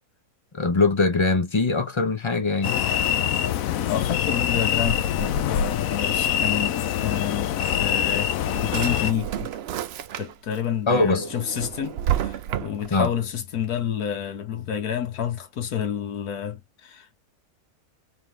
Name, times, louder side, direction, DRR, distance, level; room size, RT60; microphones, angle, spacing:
voice 1, 0.5-2.7 10.9-11.3 12.9-13.1, left 3 dB, 45° left, 0.3 m, -22 dB
sound 1, 2.6-9.1, left 9 dB, 70° left, 1.0 m, -24 dB
voice 2, 3.8-8.3 8.6-9.5 10.2-17.2, left 9 dB, 85° left, 1.5 m, -29 dB
Drawer open or close, 8.0-10.6 11.0-13.1, right 10 dB, 70° right, 0.6 m, -30 dB
3.6 x 3.5 x 3.2 m
omnidirectional pair, 1.6 m